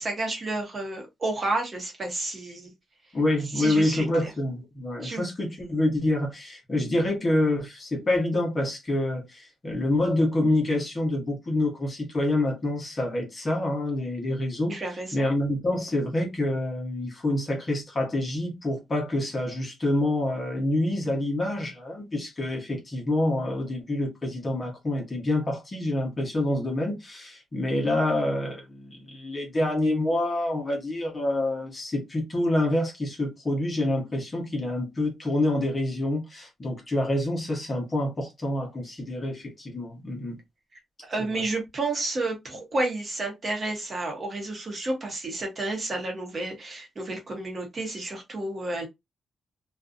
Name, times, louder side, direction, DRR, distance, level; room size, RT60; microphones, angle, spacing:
voice 1, 0.0-2.7 3.5-4.3 5.0-5.2 14.7-15.3 41.1-48.9, right 2 dB, 35° right, 1.0 m, -31 dB
voice 2, 3.1-14.8 15.1-40.4 41.2-41.4, left 1 dB, 25° left, 0.9 m, -27 dB
2.6 x 2.3 x 2.5 m
wide cardioid pair, 140°, 0 cm